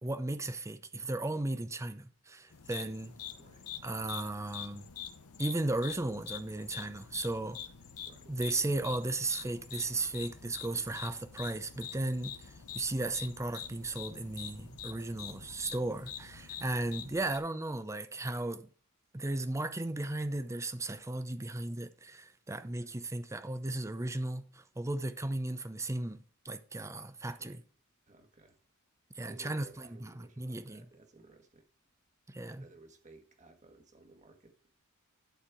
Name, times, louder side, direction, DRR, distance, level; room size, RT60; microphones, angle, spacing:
voice 1, 0.0-3.1 3.8-4.9 5.4-7.6 8.3-18.7 19.1-26.2 26.4-27.6 29.2-29.7 30.0-30.8 32.3-32.7, right 2 dB, 15° right, 0.6 m, -35 dB
sound 1, 2.5-17.4, left 9 dB, 75° left, 0.8 m, -46 dB
voice 2, 8.0-8.4 16.6-17.0 22.7-22.9 27.4-27.5 28.1-28.6 29.2-31.7 32.4-34.6, right 3 dB, 35° right, 1.6 m, -57 dB
11.5 x 4.4 x 4.8 m
head